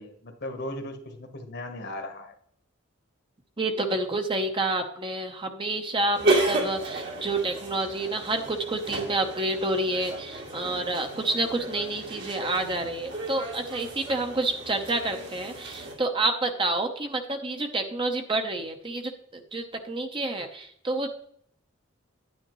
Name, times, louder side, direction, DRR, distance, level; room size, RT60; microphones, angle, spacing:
voice 1, 0.0-2.3, left 1 dB, 55° left, 5 dB, 1.4 m, -37 dB
voice 2, 3.6-21.1, right 2 dB, 25° right, 4 dB, 0.9 m, -29 dB
sound 1, 6.1-15.9, right 2 dB, 60° right, 2.4 m, -32 dB
10.0 x 9.6 x 3.1 m, 0.66 s
head